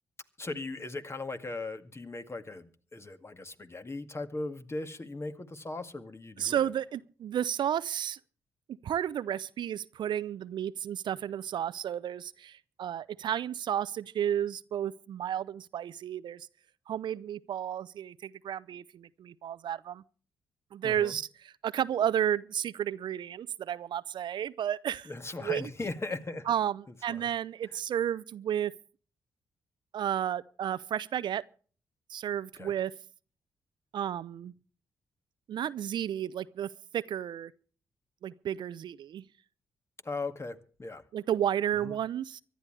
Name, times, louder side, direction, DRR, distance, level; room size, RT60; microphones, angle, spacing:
voice 1, 0.4-6.6 20.8-21.2 25.1-26.5 27.1-27.3 32.6-32.7 40.0-41.0 41.8-42.0, left 2 dB, 30° left, 2.0 m, -38 dB
voice 2, 6.4-8.2 8.8-16.5 16.9-20.0 20.7-25.1 25.4-25.7 26.5-28.7 29.9-31.4 32.1-32.9 33.9-34.5 35.5-37.5 38.2-39.2 41.1-42.4, right 10 dB, 60° right, 0.5 m, -32 dB
24.0 x 11.5 x 3.3 m
hypercardioid pair, 40°, 9 cm